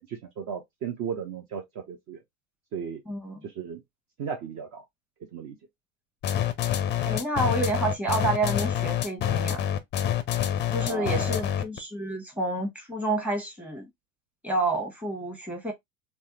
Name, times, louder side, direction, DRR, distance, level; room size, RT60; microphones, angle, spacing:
voice 1, 0.1-2.2 2.7-3.0 3.4-3.8 4.2-4.8 5.3-5.6 10.8-11.5, right 7 dB, 40° right, 0.7 m, -35 dB
voice 2, 3.1-3.4 6.7-6.8 7.0-9.7 10.7-13.8 14.4-15.7, right 2 dB, 5° right, 1.1 m, -29 dB
sound 1, 6.2-11.8, left 10 dB, 25° left, 0.4 m, -26 dB
3.3 x 2.1 x 2.8 m
hypercardioid pair, 95°, 43 cm